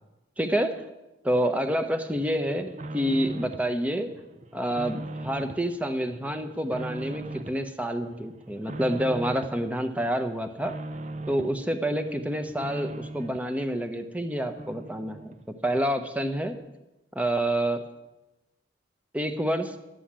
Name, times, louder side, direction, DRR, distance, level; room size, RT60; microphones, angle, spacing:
voice 1, 0.4-0.8 1.2-4.1 4.5-10.7 11.3-15.4 15.6-16.6 17.1-17.8 19.1-19.8, right 1 dB, 10° right, 7 dB, 0.8 m, -28 dB
sound 1, 2.1-3.7 4.1-5.7 6.0-7.7 8.0-9.6 10.0-11.6 11.9-13.5 13.9-14.0 14.3-14.4 14.6-15.4 15.8-15.9, right 2 dB, 35° right, 0.6 m, -39 dB
11.5 x 7.8 x 8.7 m, 1.0 s
head